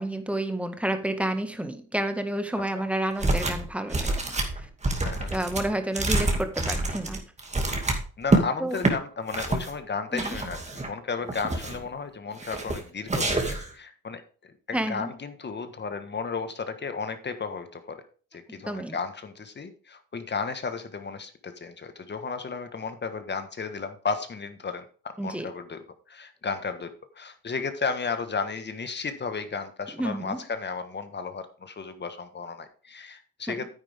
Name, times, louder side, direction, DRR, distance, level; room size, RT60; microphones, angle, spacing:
voice 1, 0.0-4.7 5.3-7.2 8.6-8.8 10.1-10.4 14.7-15.1 18.7-19.0 25.2-25.5 30.0-30.4 33.5-33.6, right 1 dB, 5° right, 7 dB, 1.6 m, -30 dB
sound 1, 3.2-3.6 3.9-8.4 8.8-8.9 9.3-9.7 10.2-10.9 11.3-11.9 12.4-12.8 13.1-13.7, right 2 dB, 20° right, 2.4 m, -27 dB
voice 2, 5.0-5.3 8.2-18.0 18.3-33.7, left 5 dB, 35° left, 9 dB, 1.5 m, -34 dB
9.8 x 8.9 x 3.6 m, 0.39 s
cardioid pair, 90°, 30 cm